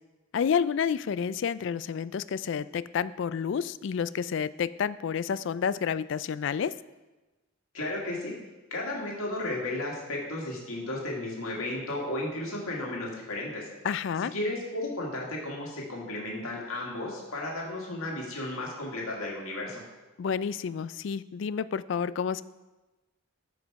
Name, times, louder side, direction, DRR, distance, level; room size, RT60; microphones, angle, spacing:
voice 1, 0.3-6.7 13.8-14.3 20.2-22.4, left 7 dB, 60° left, 16 dB, 0.3 m, -29 dB
voice 2, 7.7-8.3 8.7-13.7 14.3-19.8, left 1 dB, 85° left, -3 dB, 2.0 m, -34 dB
13.0 x 5.1 x 4.7 m, 1.1 s
head